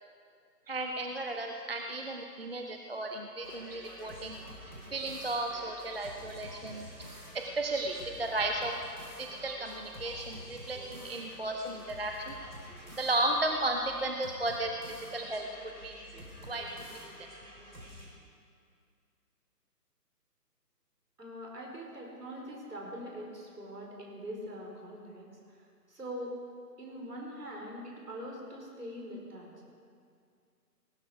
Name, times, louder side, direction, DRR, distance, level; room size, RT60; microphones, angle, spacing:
voice 1, 0.7-4.4 4.9-6.9 7.3-8.7 9.2-12.3 13.0-14.7 15.1-15.5 15.8-15.9 16.5-16.7, right 2 dB, 35° right, 3 dB, 0.7 m, -34 dB
sound 1, 3.4-18.1, equal, 90° right, 4.8 m, -48 dB
voice 2, 21.2-26.4 26.8-29.5, equal, 70° right, -2 dB, 4.9 m, -43 dB
19.0 x 12.5 x 5.0 m, 2.3 s
figure-of-eight pair, 150°, 49 cm